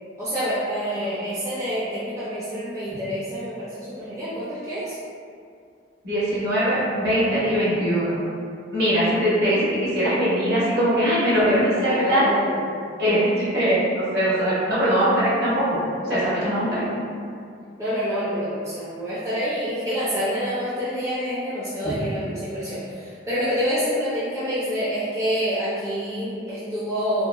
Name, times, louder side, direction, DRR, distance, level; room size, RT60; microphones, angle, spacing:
voice 1, 0.2-4.9 11.8-12.7 16.7-16.9 17.8-27.3, equal, 15° right, -11 dB, 0.4 m, -27 dB
voice 2, 6.0-8.1 8.7-12.3 13.0-15.8 16.0-16.9, equal, 60° right, -11 dB, 1.2 m, -21 dB
2.9 x 2.8 x 2.2 m, 2.3 s
head